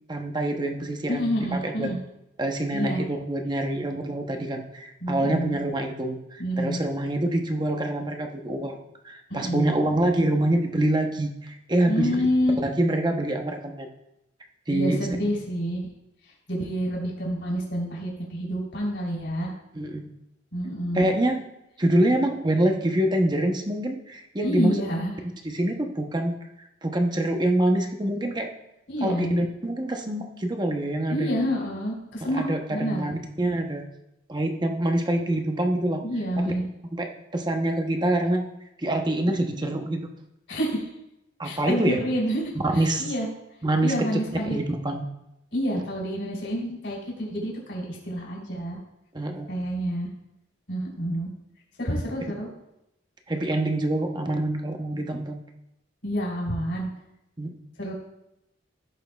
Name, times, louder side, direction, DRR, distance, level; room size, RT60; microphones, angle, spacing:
voice 1, 0.1-1.9 2.4-8.8 9.0-12.3 12.6-13.9 14.7-15.1 19.7-20.1 20.9-21.5 21.8-24.8 25.4-28.5 29.0-31.3 32.2-33.9 34.3-36.0 36.4-36.5 36.9-38.5 38.8-40.1 41.4-42.0 42.8-43.1 43.6-44.2 44.5-45.1 49.1-49.5 53.3-55.4 57.4-57.5, right 1 dB, 25° right, 3 dB, 0.8 m, -26 dB
voice 2, 1.1-2.0 2.7-3.0 5.0-5.6 6.4-6.8 9.3-9.7 11.9-12.5 14.7-15.9 16.5-19.5 20.5-21.1 24.4-25.1 28.9-29.3 31.1-32.4 32.7-33.1 36.0-36.6 40.5-40.8 41.4-43.3 43.8-44.6 45.5-48.8 49.5-50.1 50.7-51.3 51.8-52.5 56.0-56.9 57.8-57.9, equal, 70° left, -3 dB, 3.5 m, -28 dB
16.0 x 6.2 x 2.3 m, 0.86 s
head